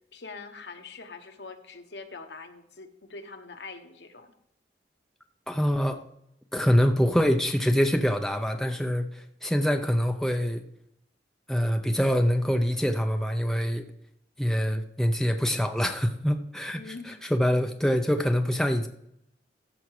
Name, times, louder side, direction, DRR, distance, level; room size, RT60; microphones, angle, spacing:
voice 1, 0.1-4.3 16.7-17.2, left 4 dB, 70° left, 6 dB, 1.1 m, -43 dB
voice 2, 5.5-6.0 6.5-10.6 11.5-13.8 14.4-18.9, equal, 5° left, 5 dB, 0.5 m, -25 dB
14.5 x 5.0 x 4.7 m, 0.77 s
head